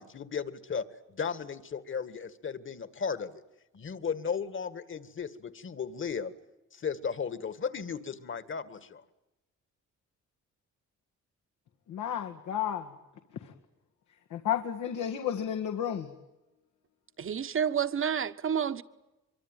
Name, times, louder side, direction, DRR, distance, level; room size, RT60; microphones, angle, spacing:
voice 1, 0.0-3.3 3.7-6.3 6.7-9.0, left 6 dB, 40° left, 1.9 m, -35 dB
voice 2, 11.9-12.9 13.4-13.5 14.3-16.1, left 9 dB, 80° left, 1.9 m, -32 dB
voice 3, 17.2-18.8, right 8 dB, 45° right, 1.3 m, -29 dB
24.0 x 24.0 x 9.2 m
cardioid pair, 90°, 30 cm